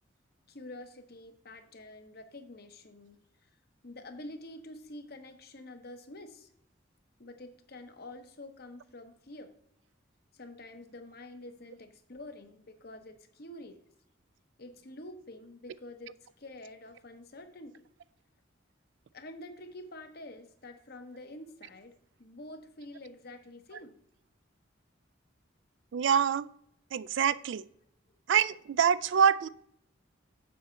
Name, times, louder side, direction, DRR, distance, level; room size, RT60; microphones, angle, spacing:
voice 1, 0.5-3.2 3.8-6.5 7.2-9.5 10.3-13.8 14.6-17.8 19.1-23.9, left 1 dB, 55° left, 7 dB, 1.0 m, -47 dB
voice 2, 25.9-26.5 26.9-27.6 28.3-29.5, right 7 dB, 65° right, 17 dB, 0.4 m, -25 dB
7.5 x 4.3 x 6.9 m, 0.67 s
head